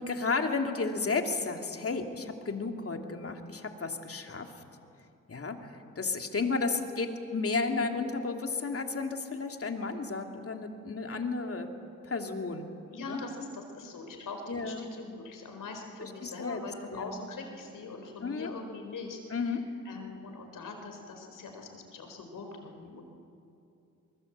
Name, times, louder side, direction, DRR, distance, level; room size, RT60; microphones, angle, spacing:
voice 1, 0.0-4.5 5.3-11.7 12.0-12.7 13.1-13.2 14.5-14.9 16.0-16.6 16.9-17.1 18.2-18.5 19.3-19.6, left 4 dB, 45° left, 4 dB, 2.8 m, -33 dB
voice 2, 12.9-23.0, left 3 dB, 75° left, 4 dB, 4.5 m, -43 dB
24.5 x 21.5 x 8.2 m, 2.6 s
cardioid pair, 65°, 32 cm